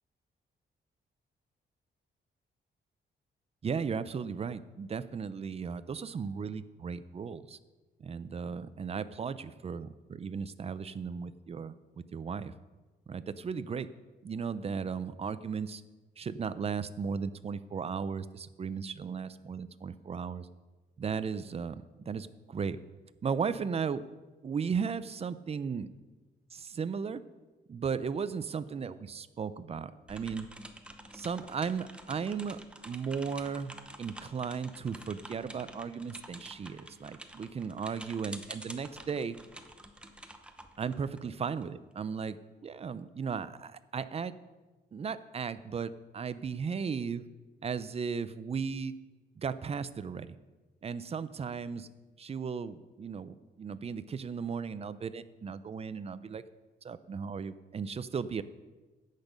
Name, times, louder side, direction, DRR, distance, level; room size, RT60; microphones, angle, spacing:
voice 1, 3.6-7.6 8.0-11.7 12.1-12.5 13.1-13.9 14.2-15.8 16.2-20.5 21.0-22.8 23.2-24.0 24.4-25.9 26.5-27.2 27.7-30.5 31.1-32.6 32.8-33.7 34.0-39.4 40.8-44.3 44.9-47.2 47.6-48.9 49.4-50.4 50.8-51.9 52.2-56.4 56.8-58.4, right 6 dB, 35° right, 14 dB, 0.5 m, -36 dB
sound 1, 30.1-41.6, right 1 dB, 5° right, 0.8 m, -49 dB
10.5 x 8.2 x 5.3 m, 1.2 s
cardioid pair, 125°, 19 cm